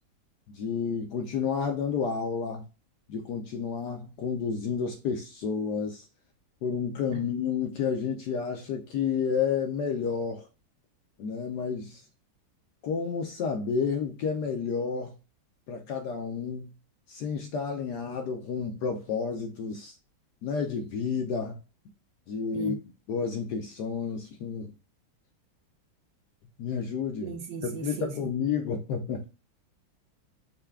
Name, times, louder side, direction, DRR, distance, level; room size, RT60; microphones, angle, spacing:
voice 1, 0.5-2.6 3.1-6.1 6.6-10.4 11.2-12.0 12.8-15.1 15.7-16.7 17.1-19.9 20.4-21.6 22.3-22.8 23.1-24.7 26.6-27.3 27.6-29.3, left 6 dB, 70° left, 1.0 m, -30 dB
voice 2, 27.2-28.2, right 6 dB, 70° right, 1.2 m, -37 dB
5.6 x 2.3 x 3.4 m
omnidirectional pair, 2.2 m